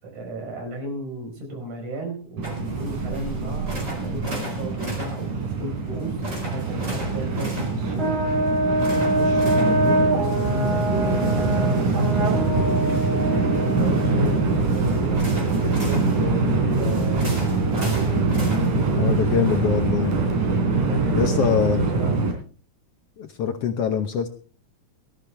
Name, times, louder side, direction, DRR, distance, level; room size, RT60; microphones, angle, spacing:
voice 1, 0.0-8.2 9.0-17.3 17.7-18.1 20.9-22.1, right 1 dB, 70° right, 3 dB, 6.1 m, -34 dB
sound 1, 2.4-19.6, equal, 25° right, 4.8 m, -39 dB
Train, 2.4-22.3, right 3 dB, 85° right, 4.6 m, -23 dB
Brass instrument, 8.0-14.7, right 1 dB, 45° right, 2.3 m, -25 dB
voice 2, 18.9-20.1 21.2-21.8 23.2-24.3, left 7 dB, 65° left, 7 dB, 1.7 m, -23 dB
18.5 x 13.5 x 3.4 m, 0.40 s
omnidirectional pair, 3.5 m